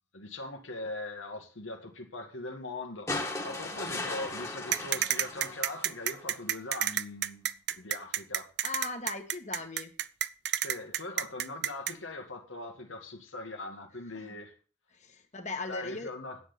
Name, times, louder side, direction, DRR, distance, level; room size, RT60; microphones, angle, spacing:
voice 1, 0.1-8.5 10.6-14.5 15.7-16.4, left 2 dB, 90° left, 1.9 m, -41 dB
sound 1, 3.1-6.4 7.7-7.8, left 2 dB, 15° left, 1.6 m, -37 dB
sound 2, 4.7-11.9, right 11 dB, 55° right, 0.5 m, -30 dB
voice 2, 8.6-9.9 14.1-14.4 14.9-16.1, left 3 dB, 35° left, 1.5 m, -38 dB
10.0 x 8.1 x 6.8 m
head